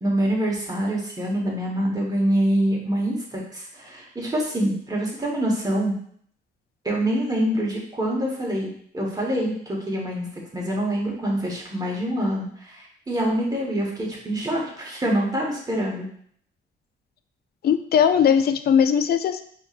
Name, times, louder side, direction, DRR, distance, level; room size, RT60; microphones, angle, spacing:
voice 1, 0.0-6.0 6.8-16.1, right 1 dB, 20° right, -3 dB, 1.3 m, -25 dB
voice 2, 17.6-19.4, left 8 dB, 50° left, 10 dB, 0.4 m, -19 dB
5.0 x 3.0 x 2.5 m, 0.63 s
cardioid pair, 90°, 20 cm